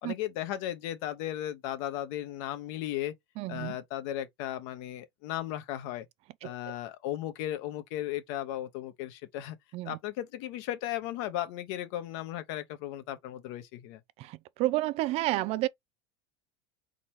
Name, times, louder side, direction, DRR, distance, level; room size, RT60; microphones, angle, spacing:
voice 1, 0.0-3.1 3.5-6.0 6.4-9.6 9.8-14.0, left 13 dB, 60° left, 1.2 m, -36 dB
voice 2, 3.4-3.8 6.4-6.8 9.7-10.0 14.2-15.7, right 17 dB, 45° right, 0.4 m, -31 dB
4.2 x 3.9 x 3.1 m
supercardioid pair, 120°, 15 cm